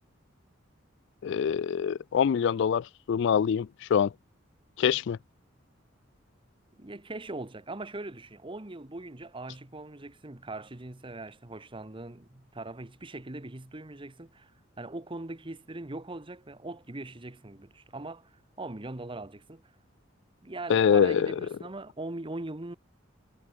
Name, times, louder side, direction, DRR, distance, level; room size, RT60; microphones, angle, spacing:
voice 1, 1.2-4.1 4.8-5.2 20.7-21.3, left 7 dB, 60° left, 0.3 m, -25 dB
voice 2, 6.8-14.5 14.8-19.7 20.4-22.8, right 2 dB, 25° right, 1.1 m, -41 dB
head